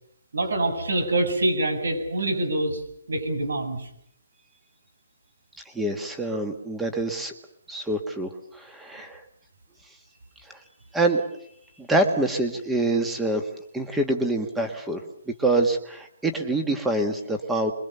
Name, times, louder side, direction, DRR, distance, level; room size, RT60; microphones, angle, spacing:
voice 1, 0.3-2.8 3.1-3.9, right 2 dB, 85° right, 8 dB, 7.9 m, -25 dB
voice 2, 5.7-7.3 7.7-9.2 10.5-10.6 10.9-11.2 11.8-13.5 13.7-15.0 15.4-17.7, right 2 dB, 5° right, 6 dB, 1.6 m, -25 dB
26.0 x 22.5 x 6.9 m, 0.72 s
hypercardioid pair, 170°, 0 cm